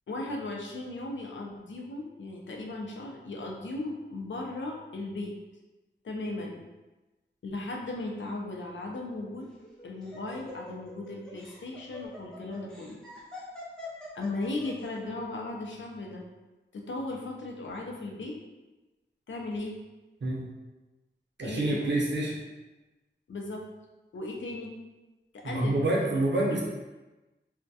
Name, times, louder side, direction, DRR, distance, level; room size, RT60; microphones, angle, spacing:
voice 1, 0.1-5.3 6.0-6.6 7.4-9.5 9.8-13.0 14.1-16.2 16.7-18.4 19.3-19.8 21.4-21.9 23.3-23.6 24.1-24.7 25.3-25.7 26.5-26.6, left 2 dB, 75° left, 0 dB, 0.4 m, -36 dB
Laughter, 9.4-14.9, left 2 dB, 5° left, 0.6 m, -45 dB
voice 2, 21.4-22.4 25.4-26.6, right 2 dB, 65° right, -3 dB, 0.6 m, -27 dB
2.2 x 2.1 x 2.6 m, 1.1 s
wide cardioid pair, 70°, 20 cm